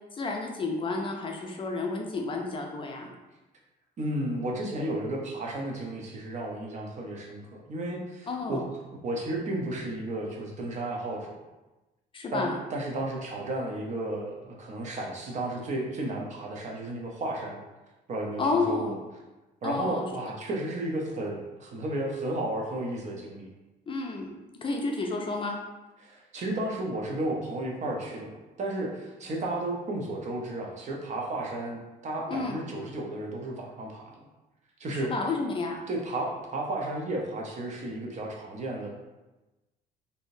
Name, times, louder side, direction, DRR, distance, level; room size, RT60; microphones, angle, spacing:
voice 1, 0.1-3.1 8.3-8.6 12.1-12.6 18.4-18.9 19.6-20.1 23.9-24.3 24.6-25.6 32.3-32.6 34.9-35.8, left 3 dB, 30° left, 1 dB, 0.5 m, -30 dB
voice 2, 4.0-8.6 9.0-11.3 12.3-17.6 18.1-19.0 19.6-23.5 26.0-34.2 34.8-35.1 35.9-38.9, right 1 dB, 45° right, 0 dB, 0.7 m, -33 dB
3.4 x 2.7 x 2.6 m, 1.1 s
cardioid pair, 110°, 17 cm